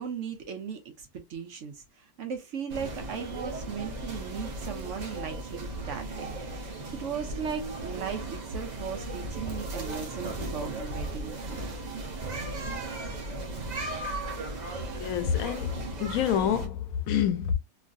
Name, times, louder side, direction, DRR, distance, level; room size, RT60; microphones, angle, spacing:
voice 1, 0.0-11.6, right 6 dB, 65° right, 0.8 m, -37 dB
sound 1, 2.7-16.7, right 2 dB, 45° right, 0.6 m, -36 dB
voice 2, 14.9-17.5, left 9 dB, 75° left, 1.0 m, -28 dB
3.0 x 2.5 x 2.5 m
omnidirectional pair, 1.6 m